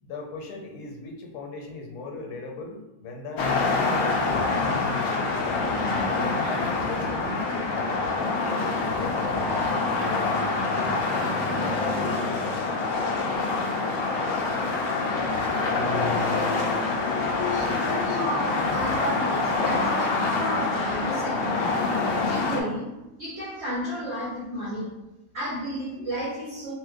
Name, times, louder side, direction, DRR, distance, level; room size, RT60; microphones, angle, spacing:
voice 1, 0.0-5.7 6.4-10.6, left 3 dB, 85° left, 2 dB, 1.1 m, -39 dB
sound 1, 3.4-22.6, left 3 dB, 70° left, 0.6 m, -26 dB
voice 2, 17.5-21.8 22.3-22.9 23.2-25.0 25.3-26.7, right 1 dB, 60° right, -6 dB, 0.8 m, -33 dB
2.9 x 2.0 x 3.4 m, 0.97 s
omnidirectional pair, 1.6 m